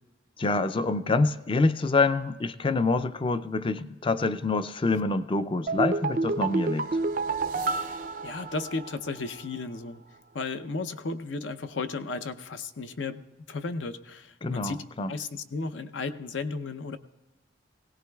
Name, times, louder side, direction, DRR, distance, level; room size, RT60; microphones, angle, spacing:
voice 1, 0.4-6.9 14.4-15.1, left 3 dB, 25° left, 13 dB, 0.4 m, -26 dB
sound 1, 5.7-9.1 9.4-9.5, right 3 dB, 45° right, 0.4 m, -29 dB
voice 2, 7.6-10.0 10.3-13.2 13.5-14.8 15.1-17.0, left 3 dB, 75° left, 10 dB, 0.6 m, -34 dB
20.0 x 17.5 x 2.3 m, 1.2 s
head